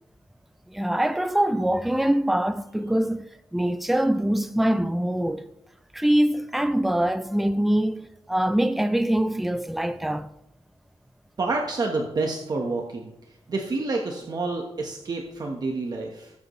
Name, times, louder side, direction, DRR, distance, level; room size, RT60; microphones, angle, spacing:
voice 1, 0.7-3.2 3.5-5.4 5.9-10.3, right 1 dB, ahead, 0.4 m, -23 dB
voice 2, 11.4-13.1 13.5-16.3, right 3 dB, 40° right, 1.2 m, -28 dB
19.5 x 7.9 x 3.2 m
wide cardioid pair, 165°, 10 cm